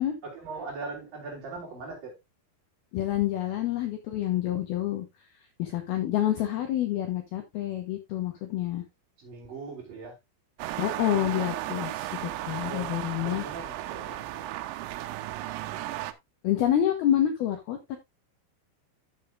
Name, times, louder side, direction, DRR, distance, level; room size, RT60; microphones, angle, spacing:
voice 1, 0.2-2.1 9.2-10.2 12.6-14.5, right 3 dB, 45° right, 4.9 m, -40 dB
voice 2, 2.9-5.1 5.6-8.8 10.8-13.4 16.4-18.0, left 12 dB, 90° left, 2.1 m, -28 dB
sound 1, 10.6-16.1, right 15 dB, 80° right, 3.3 m, -35 dB
13.0 x 7.0 x 2.4 m
omnidirectional pair, 6.0 m